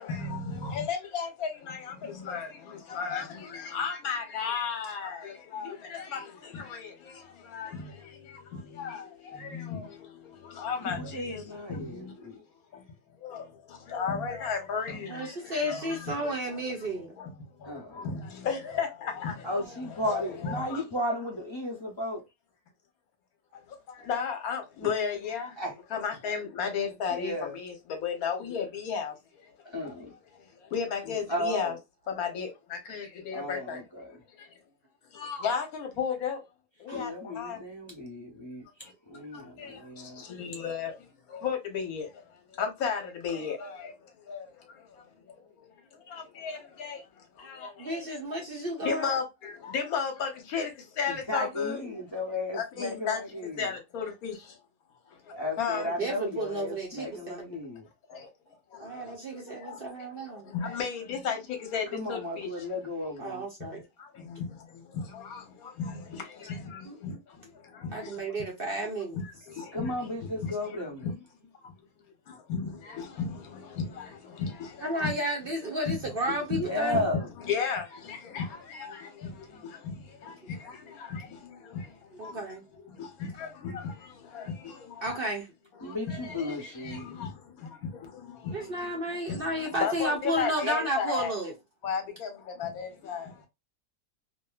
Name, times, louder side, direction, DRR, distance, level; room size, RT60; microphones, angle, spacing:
voice 1, 0.0-11.4 11.7-12.2 12.7-12.9 13.2-16.4 17.2-19.5 20.1-20.8 23.5-25.6 25.9-29.7 30.4-31.7 32.1-33.8 34.4-34.5 35.1-36.4 36.8-37.6 39.3-48.0 48.8-51.8 52.5-53.2 53.6-54.6 55.1-55.9 58.1-58.3 58.7-62.5 64.0-68.2 69.1-69.9 70.4-70.5 71.0-71.2 71.5-71.7 72.3-75.2 75.9-76.6 76.9-77.0 77.5-82.4 82.9-85.2 85.8-91.3 91.8-93.5, left 6 dB, 65° left, 1.3 m, -35 dB
voice 2, 10.8-12.4 17.6-18.1 19.4-22.3 24.8-24.9 25.4-25.7 27.1-27.6 29.6-30.1 31.3-31.8 33.3-34.2 36.9-40.2 51.1-53.8 55.3-57.9 61.9-63.4 64.1-64.2 69.7-71.1 76.5-77.3 85.8-87.1, left 1 dB, 25° left, 0.6 m, -34 dB
voice 3, 15.1-17.1 36.9-37.0 47.8-49.2 55.8-57.5 58.8-60.5 63.2-63.8 66.9-67.0 67.9-69.2 74.8-77.1 82.1-82.6 85.0-85.5 88.5-91.5, right 1 dB, 50° right, 0.6 m, -32 dB
2.8 x 2.6 x 2.3 m
omnidirectional pair, 1.7 m